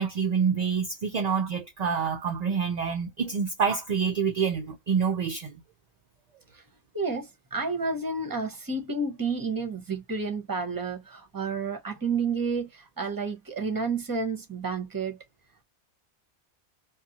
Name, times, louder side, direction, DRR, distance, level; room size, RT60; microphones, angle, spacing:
voice 1, 0.0-5.6, right 6 dB, 55° right, 0.5 m, -27 dB
voice 2, 6.9-15.2, right 4 dB, 20° right, 0.7 m, -30 dB
2.5 x 2.3 x 2.7 m
omnidirectional pair, 1.1 m